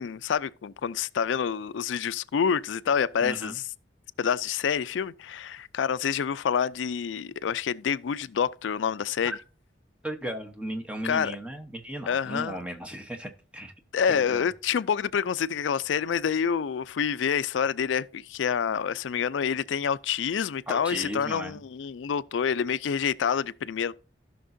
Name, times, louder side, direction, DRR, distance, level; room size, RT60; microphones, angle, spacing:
voice 1, 0.0-3.6 4.2-9.3 11.0-11.4 12.1-12.6 13.9-23.9, left 7 dB, 90° left, 0.4 m, -27 dB
voice 2, 3.2-3.6 9.2-9.4 10.0-13.7 14.1-14.5 20.7-21.6, right 1 dB, 5° right, 0.9 m, -36 dB
16.0 x 5.9 x 2.6 m
head